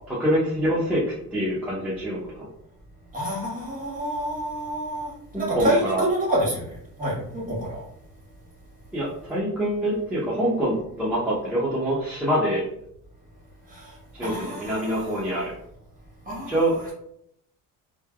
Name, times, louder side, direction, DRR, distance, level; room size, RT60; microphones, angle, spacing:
voice 1, 0.1-1.0 1.3-2.2 5.3-6.1 8.9-12.7 14.2-15.5 16.5-16.9, right 1 dB, 5° right, -9 dB, 0.6 m, -25 dB
voice 2, 3.1-7.8 13.7-15.3 16.2-16.6, right 1 dB, 25° right, -3 dB, 1.2 m, -28 dB
3.1 x 2.2 x 2.2 m, 0.74 s
cardioid pair, 125°, 35 cm